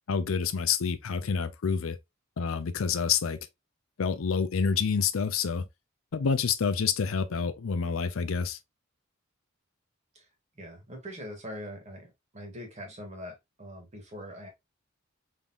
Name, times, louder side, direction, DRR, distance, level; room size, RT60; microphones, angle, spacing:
voice 1, 0.1-2.0 2.4-3.4 4.0-5.6 6.1-8.6, left 6 dB, 85° left, 0.5 m, -28 dB
voice 2, 10.5-12.1 12.3-14.5, equal, 35° right, 1.5 m, -42 dB
3.8 x 3.5 x 2.6 m
head